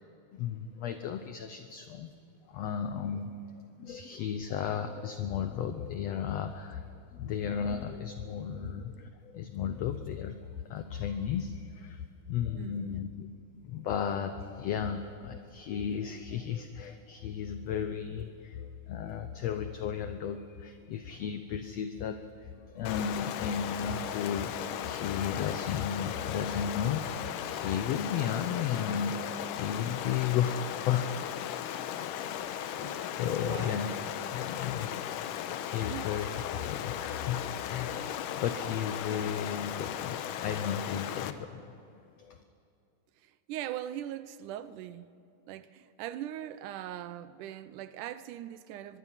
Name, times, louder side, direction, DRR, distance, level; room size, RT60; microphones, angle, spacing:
voice 1, 0.3-2.1 2.5-13.3 13.5-31.3 32.8-33.9 34.3-35.2 35.6-41.7 42.2-42.4, left 8 dB, 70° left, 1.7 m, -34 dB
voice 2, 12.5-13.1 32.8-34.0 35.9-36.1 43.2-45.1 45.5-49.0, right 12 dB, 80° right, 2.2 m, -41 dB
Stream, 22.9-41.3, left 10 dB, 90° left, 2.5 m, -36 dB
24.0 x 22.0 x 5.7 m
omnidirectional pair, 3.7 m